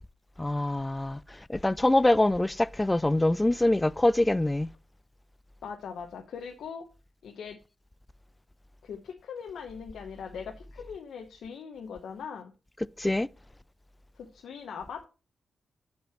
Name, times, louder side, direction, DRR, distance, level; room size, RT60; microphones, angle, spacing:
voice 1, 0.4-4.7 13.0-13.3, left 1 dB, 15° left, 0.3 m, -24 dB
voice 2, 5.6-6.8 7.2-7.6 8.8-12.5 14.2-15.1, left 6 dB, 90° left, 1.0 m, -40 dB
7.6 x 5.4 x 5.8 m
cardioid pair, 100°, 0 cm